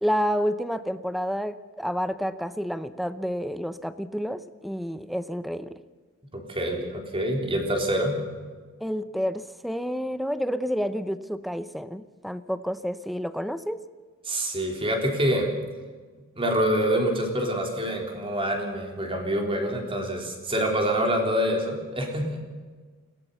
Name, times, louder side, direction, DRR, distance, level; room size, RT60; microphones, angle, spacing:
voice 1, 0.0-5.8 8.8-13.8, equal, ahead, 13 dB, 0.7 m, -29 dB
voice 2, 6.3-8.2 14.3-15.5 16.4-22.4, equal, 25° right, 2 dB, 3.7 m, -26 dB
22.0 x 17.5 x 6.9 m, 1.4 s
head